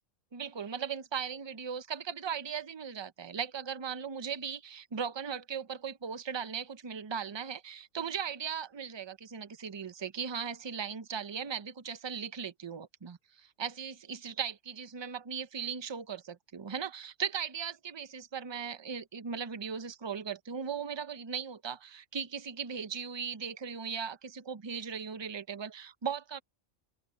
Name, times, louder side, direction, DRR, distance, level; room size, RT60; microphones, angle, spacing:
voice 1, 0.3-26.4, right 7 dB, 30° right, 0.6 m, -38 dB
open air
omnidirectional pair, 1.3 m